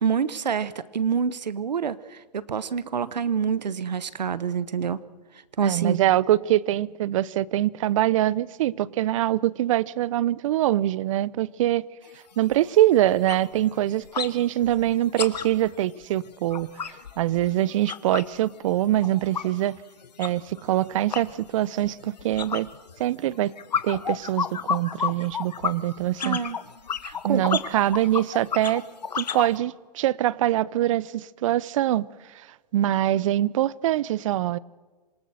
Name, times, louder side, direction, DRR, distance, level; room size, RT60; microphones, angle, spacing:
voice 1, 0.0-5.0 5.6-6.0 26.2-26.6 27.0-27.5, right 6 dB, 80° right, 1.1 m, -27 dB
voice 2, 5.6-11.8 12.4-19.8 20.2-22.7 23.0-23.5 23.8-26.4 27.2-28.9 29.1-32.1 32.3-32.5 32.7-34.6, right 13 dB, 50° right, 0.7 m, -24 dB
sound 1, 12.0-12.1 12.5-12.7 13.0-14.3 14.6-18.4 18.7-29.5, left 7 dB, 80° left, 1.4 m, -32 dB
26.5 x 19.0 x 6.5 m
hypercardioid pair, 125°, 21 cm